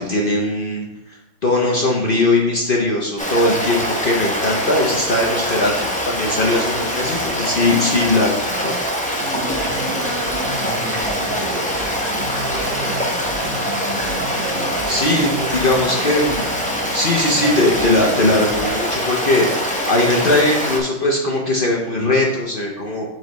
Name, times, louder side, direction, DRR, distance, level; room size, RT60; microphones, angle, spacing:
voice 1, 0.0-8.8 14.9-16.6 16.9-19.4 19.9-23.0, left 2 dB, 55° left, -2 dB, 0.6 m, -19 dB
Stream, 3.2-20.8, equal, 10° left, 0.5 m, -23 dB
voice 2, 7.5-8.9 9.2-13.7 14.3-15.5, right 3 dB, 75° right, -1 dB, 1.7 m, -35 dB
sound 1, 9.2-18.7, right 1 dB, 35° right, 1.6 m, -33 dB
7.6 x 4.4 x 3.1 m, 0.97 s
omnidirectional pair, 2.0 m